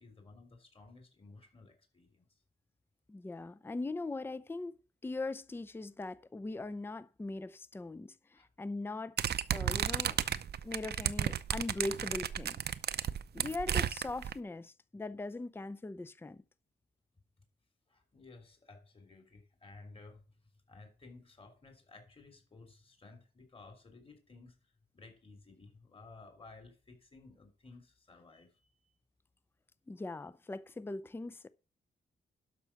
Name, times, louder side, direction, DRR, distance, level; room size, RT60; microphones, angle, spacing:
voice 1, 0.0-2.4 8.3-8.5 17.9-28.9, left 3 dB, 30° left, 3.3 m, -56 dB
voice 2, 3.1-9.2 9.5-10.2 10.6-12.5 13.3-16.4 29.9-31.5, left 2 dB, 10° left, 0.5 m, -40 dB
sound 1, 9.2-14.3, right 9 dB, 65° right, 0.6 m, -33 dB
12.0 x 5.8 x 5.8 m
wide cardioid pair, 105°, 18 cm